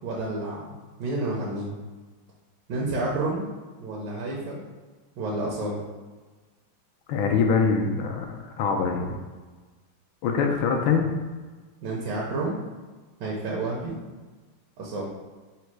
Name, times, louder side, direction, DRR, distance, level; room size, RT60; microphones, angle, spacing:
voice 1, 0.0-0.6 1.0-1.7 2.7-3.5 3.8-4.6 5.2-5.8 11.8-12.6 13.2-14.0 14.8-15.1, right 2 dB, 70° right, -4 dB, 1.3 m, -29 dB
voice 2, 7.1-9.2 10.2-11.1, left 5 dB, 80° left, 3 dB, 1.3 m, -24 dB
4.1 x 2.2 x 4.5 m, 1.3 s
omnidirectional pair, 2.3 m